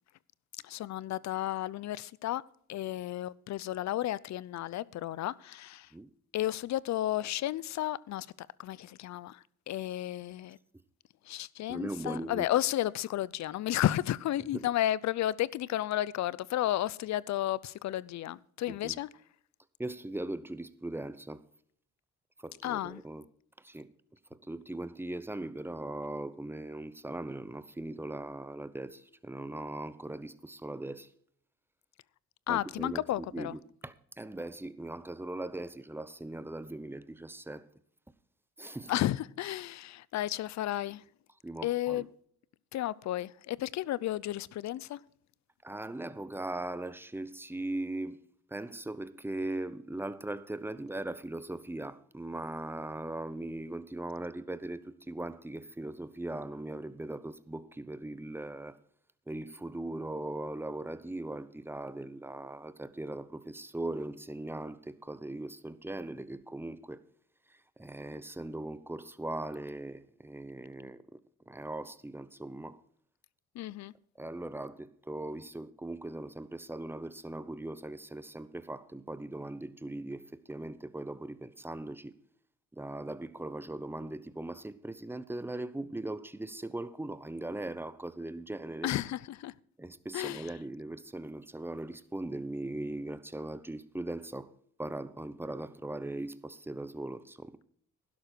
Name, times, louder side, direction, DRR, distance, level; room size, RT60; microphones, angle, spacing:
voice 1, 0.6-2.4 2.7-5.9 6.3-10.6 11.2-19.1 22.6-23.0 32.5-33.5 38.9-41.0 41.6-42.1 42.7-45.0 73.5-73.9 88.8-89.6 90.1-90.5, left 13 dB, 65° left, 0.6 m, -33 dB
voice 2, 11.7-12.4 14.5-14.7 18.7-19.0 19.8-21.4 22.4-23.2 23.6-23.9 24.3-31.1 32.5-37.7 38.6-38.9 41.4-42.0 45.6-48.2 48.5-58.8 59.3-67.0 67.5-71.2 71.5-72.8 74.2-82.1 82.7-88.9 89.8-94.5 94.8-97.6, right 2 dB, 5° right, 0.9 m, -39 dB
11.5 x 11.5 x 4.5 m
cardioid pair, 90°, 30 cm